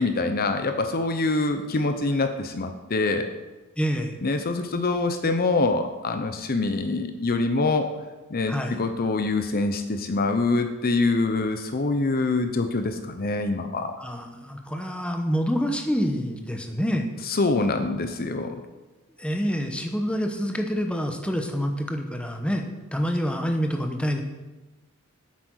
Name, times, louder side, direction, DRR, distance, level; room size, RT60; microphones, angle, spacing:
voice 1, 0.0-3.3 4.2-7.9 8.3-13.9 17.3-18.6, left 3 dB, 45° left, 8 dB, 0.7 m, -25 dB
voice 2, 3.8-4.1 8.5-8.8 14.0-17.1 19.2-22.7 22.9-24.2, equal, 5° left, 4 dB, 1.0 m, -27 dB
8.5 x 8.4 x 6.3 m, 1.2 s
head